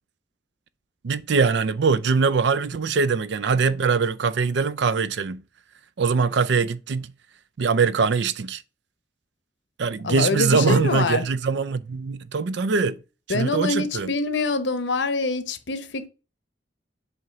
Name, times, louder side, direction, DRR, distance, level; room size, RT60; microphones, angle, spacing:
voice 1, 1.0-5.4 6.0-7.1 7.6-8.6 9.8-13.0 13.3-14.1, right 5 dB, 70° right, 0.5 m, -22 dB
voice 2, 10.0-11.2 13.3-16.1, left 3 dB, 75° left, 0.8 m, -25 dB
7.8 x 2.8 x 5.9 m
head